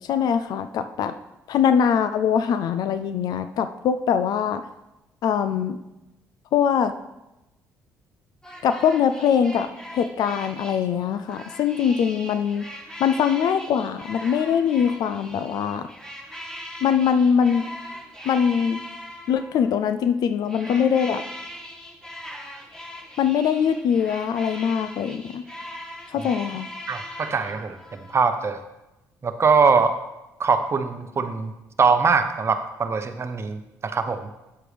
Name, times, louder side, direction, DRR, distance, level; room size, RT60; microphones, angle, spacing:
voice 1, 0.1-1.1 1.5-4.6 5.2-5.8 6.5-6.9 8.6-12.7 13.0-15.9 16.8-17.7 18.2-18.8 19.3-21.2 23.2-25.4 26.1-26.7, left 7 dB, 65° left, 10 dB, 0.4 m, -22 dB
sound 1, 8.4-19.8 20.4-28.2, equal, 10° left, 1.5 m, -40 dB
voice 2, 26.9-28.6 29.2-30.0 30.4-31.5 31.8-34.3, right 5 dB, 40° right, 9 dB, 0.8 m, -22 dB
8.6 x 7.6 x 3.4 m, 0.96 s
supercardioid pair, 70°, 7 cm